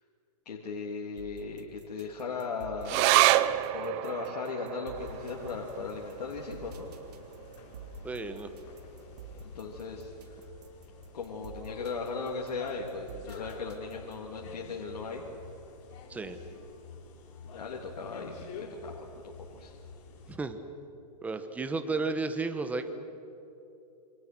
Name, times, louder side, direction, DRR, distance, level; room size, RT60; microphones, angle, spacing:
voice 1, 0.4-3.0 3.7-6.9 9.4-10.4 11.1-15.2 17.4-19.2 19.5-19.7, left 4 dB, 75° left, -1 dB, 3.2 m, -37 dB
sound 1, 1.2-14.3, right 2 dB, 70° right, 3.3 m, -48 dB
sound 2, 2.9-9.6 10.0-10.1 10.4-11.0 11.6-11.7, right 15 dB, 30° right, 0.7 m, -30 dB
sound 3, 4.9-20.4, left 4 dB, 45° left, 4.6 m, -49 dB
voice 2, 8.0-8.5 16.1-16.4 20.3-20.6 21.2-22.9, right 3 dB, 5° right, 9 dB, 1.2 m, -33 dB
28.0 x 26.0 x 6.2 m, 2.9 s
hypercardioid pair, 140°, 21 cm